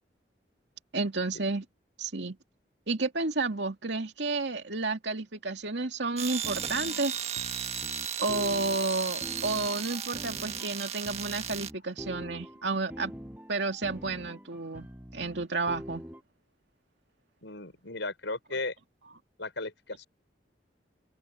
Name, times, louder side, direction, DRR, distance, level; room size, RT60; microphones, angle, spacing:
voice 1, 0.9-1.6 2.0-2.4 2.9-7.1 8.2-13.1 13.5-16.0, right 3 dB, 75° right, 2.4 m, -31 dB
sound 1, 6.2-11.7, right 8 dB, 35° right, 1.6 m, -35 dB
sound 2, 6.3-16.2, equal, 10° right, 7.4 m, -45 dB
voice 2, 17.4-18.7 19.4-20.1, left 3 dB, 80° left, 5.4 m, -36 dB
open air
head